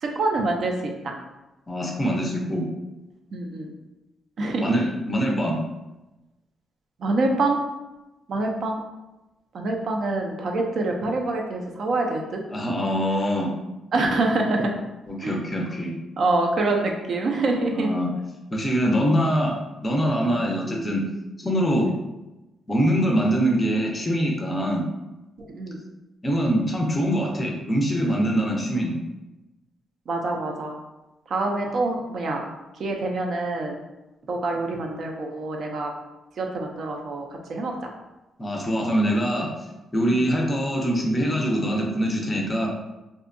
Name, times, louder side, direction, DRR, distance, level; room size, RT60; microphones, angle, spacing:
voice 1, 0.0-0.7 1.0-1.1 3.3-3.7 4.4-4.7 7.0-7.6 8.3-8.8 9.5-12.4 13.9-14.7 15.2-15.4 16.2-17.9 20.3-20.4 21.8-22.0 25.5-25.8 30.1-30.8 31.3-32.5 32.7-33.8 34.3-35.9 36.4-37.9 40.1-40.2, right 2 dB, 55° right, 1 dB, 0.4 m, -26 dB
voice 2, 1.7-2.7 4.6-5.6 12.5-13.5 15.1-16.0 17.7-18.1 18.5-19.6 19.8-21.1 21.4-21.9 22.7-24.9 26.2-29.0 38.4-39.5 39.9-42.7, equal, 20° left, 0 dB, 0.5 m, -23 dB
2.6 x 2.1 x 2.5 m, 1.0 s
cardioid pair, 110°, 0 cm